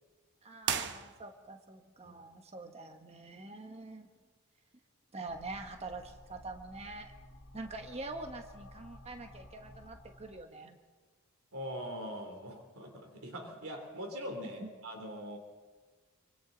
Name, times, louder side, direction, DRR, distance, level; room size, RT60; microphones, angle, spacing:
voice 1, 0.4-4.1 5.1-7.1 7.5-10.8 14.6-14.7, right 2 dB, 30° right, 5 dB, 1.3 m, -45 dB
sound 1, 0.6-1.7, right 7 dB, 55° right, 1.0 m, -36 dB
sound 2, 5.3-10.4, left 1 dB, 85° left, 2.2 m, -54 dB
voice 2, 11.5-15.4, equal, 75° right, 3 dB, 3.1 m, -42 dB
26.5 x 25.0 x 4.0 m, 1.4 s
head